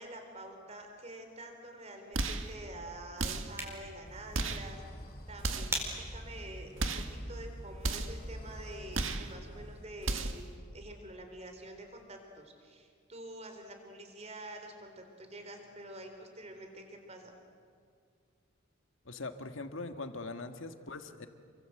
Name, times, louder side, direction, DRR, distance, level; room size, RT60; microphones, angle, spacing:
voice 1, 0.0-5.0 5.3-10.5 10.7-17.3, right 1 dB, 30° right, 5 dB, 3.8 m, -47 dB
sound 1, 2.1-2.5 3.2-3.6 4.3-4.7 5.4-5.8 6.8-7.2 7.8-8.2 8.9-9.3 10.0-10.5, right 3 dB, 75° right, 1.8 m, -34 dB
sound 2, 3.3-8.4, right 1 dB, 15° right, 4.7 m, -44 dB
sound 3, 4.0-9.9, equal, 45° left, 4.3 m, -47 dB
voice 2, 19.1-21.3, left 3 dB, 75° left, 7 dB, 1.8 m, -41 dB
29.5 x 24.0 x 7.9 m, 2.2 s
head